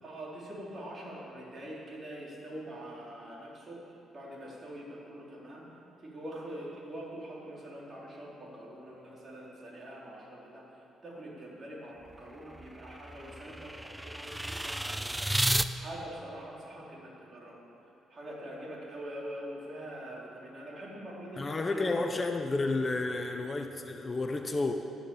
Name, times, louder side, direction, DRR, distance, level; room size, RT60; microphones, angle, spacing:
voice 1, 0.0-5.6 6.0-17.6 18.1-22.1, right 1 dB, 40° right, -4 dB, 4.1 m, -44 dB
sound 1, 12.1-15.7, right 1 dB, 10° right, 0.5 m, -33 dB
voice 2, 21.4-24.7, left 3 dB, 30° left, 4 dB, 0.9 m, -31 dB
13.0 x 11.0 x 7.2 m, 2.8 s
cardioid pair, 90°, 0 cm